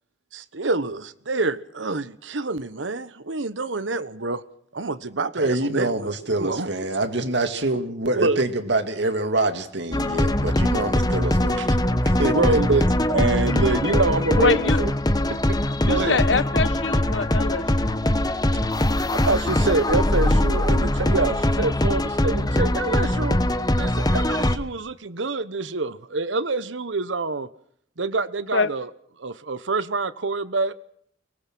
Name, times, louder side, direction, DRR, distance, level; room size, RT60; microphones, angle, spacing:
voice 1, 0.3-4.4 4.7-6.1 6.4-6.7 8.2-8.4 11.5-11.7 12.1-14.9 15.3-15.6 15.8-16.2 19.1-23.4 23.7-27.5 28.0-28.9 29.2-30.7, right 3 dB, 90° right, 1.1 m, -26 dB
voice 2, 5.3-11.8 12.0-12.8, right 2 dB, 70° right, 2.3 m, -26 dB
sound 1, 9.9-24.6, left 1 dB, 20° left, 1.1 m, -22 dB
voice 3, 14.4-14.8 15.9-18.0 28.5-28.7, left 4 dB, 75° left, 1.1 m, -24 dB
24.0 x 19.5 x 6.2 m
head